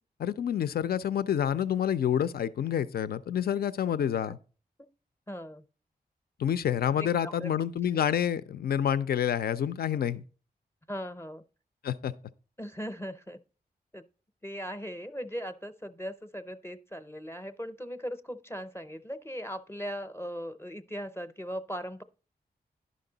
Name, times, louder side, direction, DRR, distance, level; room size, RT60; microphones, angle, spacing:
voice 1, 0.2-4.4 6.4-10.2 11.8-12.1, left 9 dB, 70° left, 0.4 m, -28 dB
voice 2, 5.3-5.6 7.2-7.5 10.9-11.4 12.6-13.4 13.9-14.0 14.4-22.0, equal, 15° left, 0.6 m, -38 dB
11.0 x 5.2 x 3.9 m
cardioid pair, 60°, 16 cm